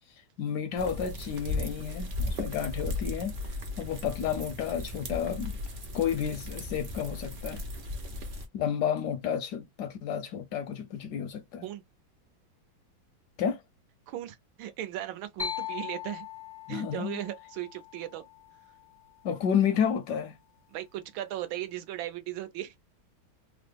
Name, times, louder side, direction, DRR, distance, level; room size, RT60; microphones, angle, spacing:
voice 1, 0.4-5.5 5.9-7.6 8.5-11.6 13.4-13.6 16.7-17.2 19.2-20.4, left 8 dB, 75° left, 0.9 m, -31 dB
sound 1, 0.8-8.5, left 2 dB, 65° right, 0.5 m, -36 dB
voice 2, 14.1-16.3 16.7-18.3 20.7-22.7, right 13 dB, 80° right, 1.4 m, -37 dB
sound 2, 15.4-19.1, left 8 dB, 40° left, 0.3 m, -40 dB
3.6 x 2.0 x 3.3 m
omnidirectional pair, 2.2 m